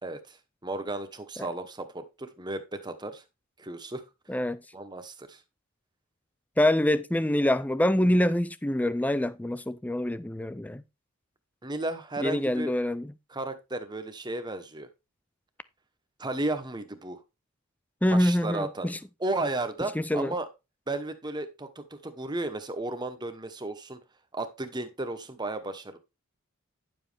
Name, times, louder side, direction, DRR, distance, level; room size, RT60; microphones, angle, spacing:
voice 1, 0.0-0.4 0.6-3.2 3.6-4.0 4.7-5.4 11.6-12.7 13.3-14.9 16.2-17.2 18.1-18.9 19.2-20.5 20.9-24.0 24.3-26.0, right 2 dB, 20° right, 1.0 m, -34 dB
voice 2, 4.3-4.6 6.6-10.8 12.2-13.1 18.0-19.0 20.0-20.3, left 1 dB, 5° left, 0.4 m, -25 dB
10.0 x 7.3 x 3.4 m
head